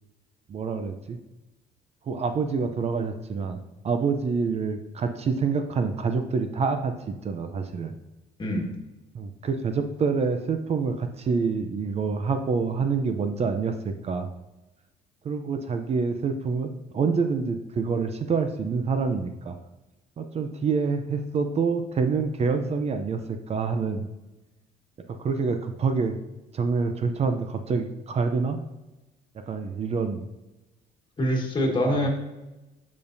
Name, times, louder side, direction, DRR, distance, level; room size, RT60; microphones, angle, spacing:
voice 1, 0.5-1.2 2.1-7.9 9.1-14.3 15.2-19.6 20.2-24.1 25.1-26.2 26.5-28.6 29.3-30.3 31.7-32.1, right 5 dB, 40° right, 7 dB, 0.6 m, -27 dB
voice 2, 8.4-8.7 31.2-32.1, equal, 30° left, 0 dB, 1.6 m, -25 dB
9.2 x 5.2 x 2.7 m, 1.0 s
cardioid pair, 110°, 17 cm